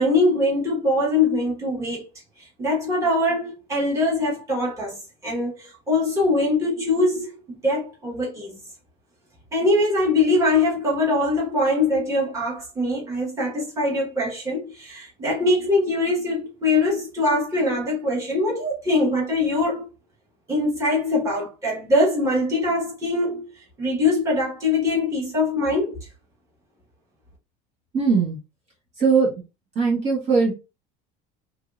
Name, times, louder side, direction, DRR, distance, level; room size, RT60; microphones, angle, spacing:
voice 1, 0.0-2.0 2.4-8.6 9.5-19.9 20.5-26.0, left 2 dB, 15° right, 1.2 m, -22 dB
voice 2, 27.9-28.4 29.0-29.3 29.7-30.5, right 5 dB, 40° right, 1.1 m, -20 dB
3.1 x 2.7 x 2.4 m
cardioid pair, 160°, 17 cm